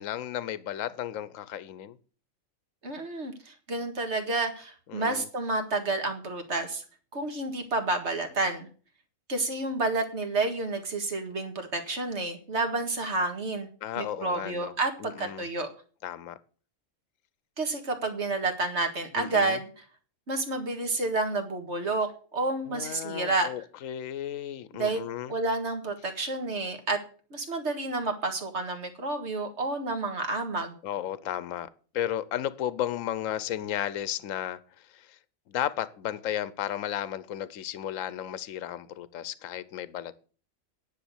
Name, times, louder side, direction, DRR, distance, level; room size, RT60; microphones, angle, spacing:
voice 1, 0.0-2.0 4.9-5.3 13.8-14.7 15.0-15.4 16.0-16.4 19.2-19.6 22.7-25.3 30.8-31.7 31.9-34.6 34.9-35.0 35.5-40.2, left 11 dB, 75° left, 1.1 m, -34 dB
voice 2, 2.8-6.8 7.1-8.7 9.3-13.7 14.0-15.7 17.6-19.8 20.3-23.5 24.7-25.0 25.3-27.0 27.3-30.8, right 2 dB, 55° right, 2.1 m, -30 dB
10.0 x 6.6 x 8.0 m
omnidirectional pair, 1.4 m